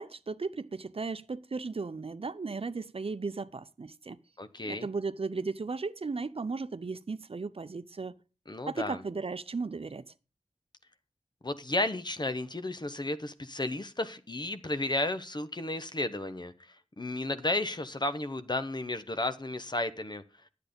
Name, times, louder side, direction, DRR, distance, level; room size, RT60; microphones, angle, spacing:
voice 1, 0.0-4.2 4.6-8.2 8.7-10.1, right 4 dB, 55° right, 0.6 m, -36 dB
voice 2, 4.4-4.9 8.5-9.0 11.4-20.2, left 2 dB, 40° left, 0.9 m, -33 dB
10.0 x 8.4 x 5.2 m
cardioid pair, 40°, 12 cm